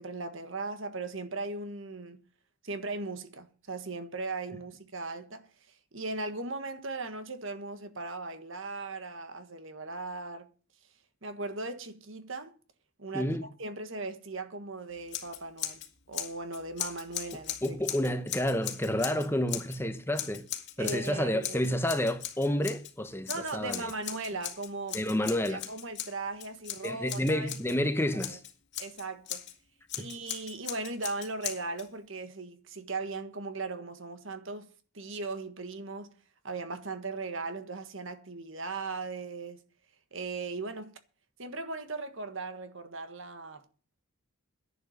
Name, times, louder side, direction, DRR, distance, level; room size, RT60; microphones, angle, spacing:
voice 1, 0.0-2.2 2.6-10.5 11.2-12.5 13.0-15.8 16.1-17.8 20.8-21.6 23.3-25.1 25.5-27.5 28.3-28.4 28.8-29.5 29.9-36.2 36.4-39.6 40.1-41.0 41.4-43.7, right 3 dB, 55° right, 1.5 m, -38 dB
Scissors, 15.1-15.9 16.1-19.8 20.1-21.1 21.4-22.9 23.3-27.7 28.2-29.5 29.9-31.9, left 11 dB, 50° left, 2.1 m, -39 dB
voice 2, 17.6-20.5 20.8-23.9 24.9-25.7 26.8-28.4 30.0-30.1, left 1 dB, 10° left, 1.0 m, -30 dB
11.0 x 10.5 x 6.6 m
head